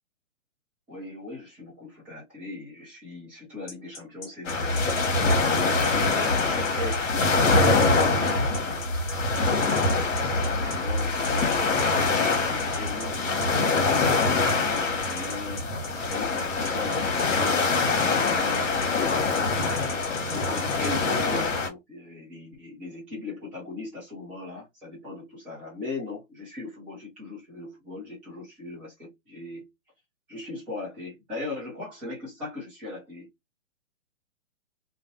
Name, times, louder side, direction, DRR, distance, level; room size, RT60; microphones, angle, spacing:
voice 1, 0.9-5.0 5.7-8.6 9.3-11.2 12.3-14.5 15.0-15.7 16.1-19.5 20.2-29.7 30.3-33.3, left 2 dB, 5° right, 0.4 m, -39 dB
sound 1, 3.7-20.9, left 4 dB, 50° left, 1.1 m, -41 dB
sound 2, 4.4-21.7, left 3 dB, 70° left, 0.9 m, -24 dB
2.5 x 2.0 x 2.6 m
figure-of-eight pair, 130°, 40 cm